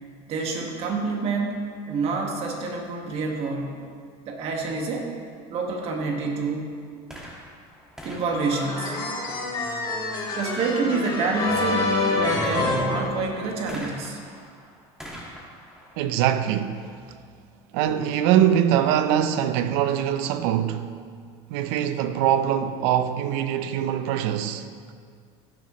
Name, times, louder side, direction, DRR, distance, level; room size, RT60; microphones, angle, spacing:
voice 1, 0.3-3.8 4.3-5.1 5.5-6.7 8.0-9.0 10.4-14.2, right 4 dB, 45° right, 1.9 m, -27 dB
sound 1, 7.1-9.6 13.7-17.3 18.1-18.2, equal, 5° right, 2.0 m, -44 dB
sound 2, 8.3-13.7, left 2 dB, 30° left, 3.0 m, -27 dB
voice 2, 16.0-16.9 17.7-20.9 21.5-24.7, right 10 dB, 75° right, 0.7 m, -23 dB
15.5 x 10.0 x 3.2 m
cardioid pair, 145°, 14 cm